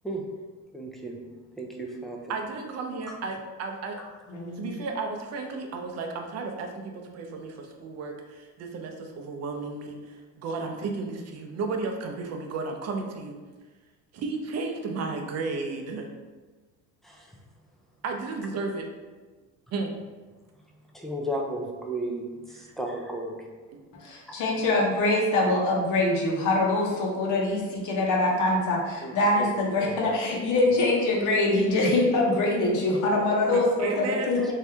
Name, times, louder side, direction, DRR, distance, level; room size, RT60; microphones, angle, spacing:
voice 1, 0.7-1.2 1.6-2.3 3.1-3.2 4.0-4.1 17.0-17.3 20.9-23.3 29.0-30.0 34.4-34.5, right 1 dB, ahead, -1 dB, 0.5 m, -34 dB
voice 2, 2.3-4.0 4.6-13.3 14.1-16.1 18.0-18.8 19.7-19.9 22.6-22.7 24.2-24.4 33.5-34.3, right 4 dB, 45° right, 3 dB, 0.7 m, -33 dB
voice 3, 4.3-4.8 24.0-34.5, left 2 dB, 55° left, -1 dB, 1.0 m, -24 dB
3.2 x 2.7 x 3.4 m, 1.3 s
supercardioid pair, 105°, 35 cm